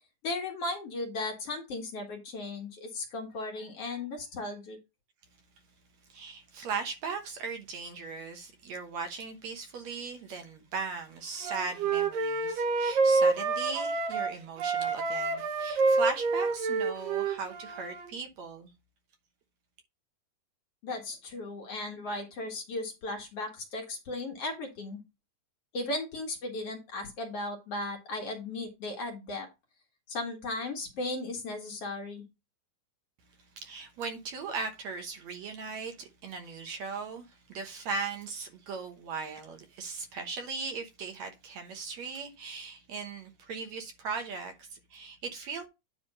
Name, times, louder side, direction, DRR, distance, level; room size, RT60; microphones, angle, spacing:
voice 1, 0.2-4.8 20.8-25.0 25.7-29.5 30.1-32.2, left 2 dB, 55° left, 2.1 m, -36 dB
voice 2, 6.1-18.7 33.6-45.7, right 5 dB, 65° right, 2.1 m, -38 dB
Wind instrument woodwind instrument, 11.4-14.3 14.6-18.1, right 4 dB, 85° right, 3.0 m, -28 dB
9.8 x 3.4 x 5.3 m
omnidirectional pair, 3.8 m